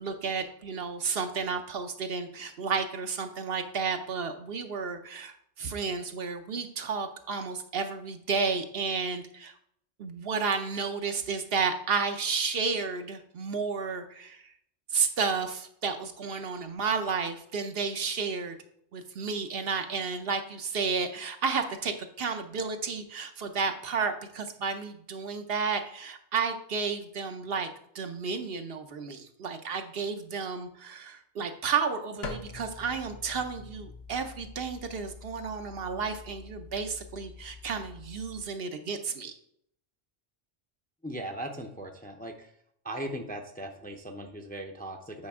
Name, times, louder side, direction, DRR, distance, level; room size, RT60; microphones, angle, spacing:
voice 1, 0.0-9.5 10.0-14.5 14.9-18.6 18.9-27.7 27.9-39.3, right 5 dB, 65° right, 7 dB, 0.9 m, -32 dB
sound 1, 32.2-38.4, left 4 dB, 70° left, 1.0 m, -45 dB
voice 2, 41.0-42.5 42.8-45.3, right 1 dB, 10° left, 3 dB, 0.5 m, -38 dB
8.5 x 5.1 x 3.5 m, 0.70 s
omnidirectional pair, 1.1 m